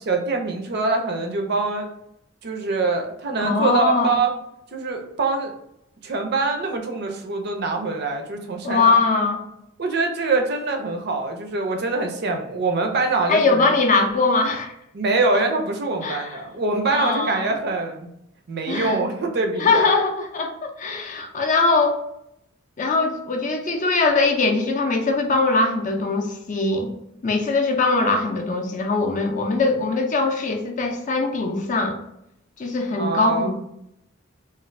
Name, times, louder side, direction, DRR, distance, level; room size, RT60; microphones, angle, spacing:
voice 1, 0.1-1.9 2.4-4.3 4.7-5.5 6.0-8.9 9.8-13.6 14.9-18.1 18.5-19.9 33.0-33.5, right 3 dB, 50° right, 3 dB, 0.4 m, -24 dB
voice 2, 3.4-4.1 8.6-9.4 13.3-14.7 16.0-16.4 16.9-17.5 18.7-19.0 19.6-22.0 22.8-26.9 27.2-32.0 32.6-33.5, left 3 dB, 40° left, 3 dB, 0.4 m, -21 dB
2.5 x 2.4 x 3.1 m, 0.80 s
head